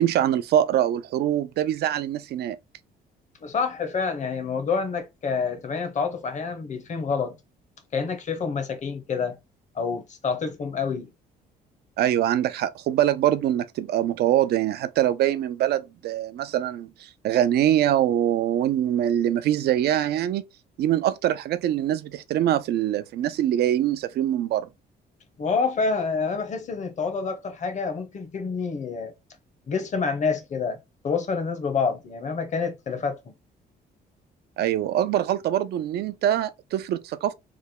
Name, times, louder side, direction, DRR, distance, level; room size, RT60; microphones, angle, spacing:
voice 1, 0.0-2.6 12.0-20.4 20.8-24.7 34.6-37.3, right 11 dB, 70° right, 0.5 m, -23 dB
voice 2, 3.4-7.4 7.9-9.4 9.7-11.1 25.4-29.1 29.7-30.8 31.0-33.3, left 5 dB, 45° left, 0.9 m, -27 dB
3.3 x 2.1 x 3.6 m
cardioid pair, 90°, 17 cm